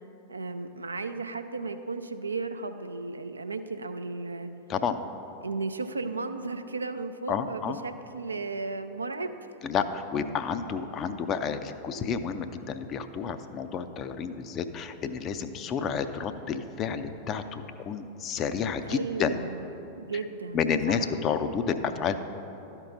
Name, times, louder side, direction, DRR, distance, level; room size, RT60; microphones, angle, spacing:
voice 1, 0.3-4.5 5.4-9.3 11.0-11.2 15.7-16.0 18.8-21.1, right 3 dB, 80° right, 9 dB, 0.4 m, -35 dB
voice 2, 7.3-7.8 9.6-19.4 20.5-22.2, left 6 dB, 30° left, 10 dB, 0.4 m, -30 dB
12.0 x 4.5 x 5.3 m, 3.0 s
figure-of-eight pair, 90°, 0 cm